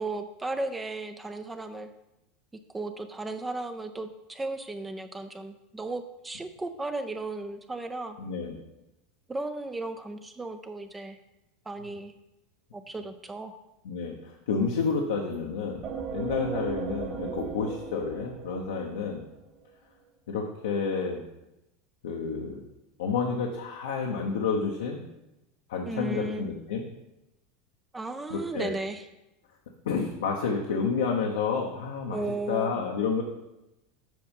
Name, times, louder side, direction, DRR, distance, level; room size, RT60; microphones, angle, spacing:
voice 1, 0.0-1.9 2.7-8.2 9.3-11.2 11.7-12.1 12.7-13.6 25.8-26.5 27.9-29.1 32.1-32.8, right 2 dB, 15° right, 7 dB, 0.5 m, -35 dB
voice 2, 8.2-8.6 13.8-15.8 16.1-19.2 20.3-21.2 22.0-22.6 23.0-25.0 25.7-26.8 28.3-28.7 29.8-32.2 32.5-33.2, left 5 dB, 85° left, 0 dB, 1.0 m, -30 dB
sound 1, 15.8-19.4, right 7 dB, 40° right, 2.1 m, -36 dB
7.7 x 5.3 x 5.3 m, 0.93 s
supercardioid pair, 115°, 0 cm